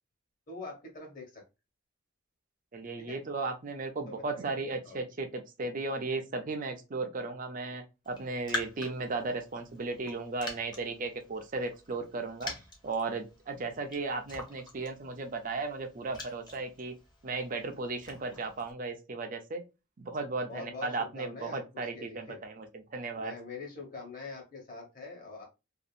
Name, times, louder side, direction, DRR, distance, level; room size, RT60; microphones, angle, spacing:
voice 1, 0.5-1.4 3.0-3.2 4.1-4.6 4.8-5.0 20.5-22.4 23.1-25.4, left 3 dB, 45° left, 1.2 m, -44 dB
voice 2, 2.7-12.5 12.8-16.9 17.2-19.6 20.0-23.3, right 3 dB, 40° right, 0.5 m, -35 dB
Raindrop, 8.0-18.7, left 2 dB, 20° left, 0.8 m, -45 dB
2.8 x 2.4 x 2.4 m
head